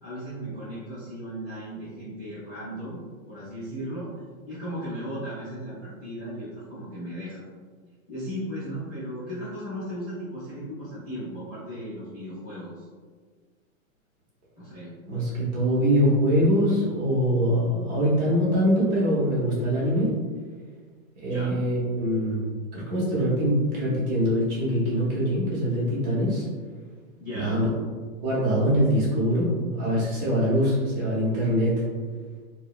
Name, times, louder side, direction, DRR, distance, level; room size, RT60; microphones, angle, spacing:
voice 1, 0.0-4.1 4.5-7.4 8.1-12.8 14.6-15.0 21.3-21.6 27.2-27.7, equal, 15° left, -16 dB, 0.3 m, -36 dB
voice 2, 15.1-20.1 21.2-26.4 27.3-27.7 28.2-31.7, equal, 30° right, -7 dB, 1.0 m, -23 dB
2.9 x 2.6 x 2.4 m, 1.5 s
supercardioid pair, 165°, 42 cm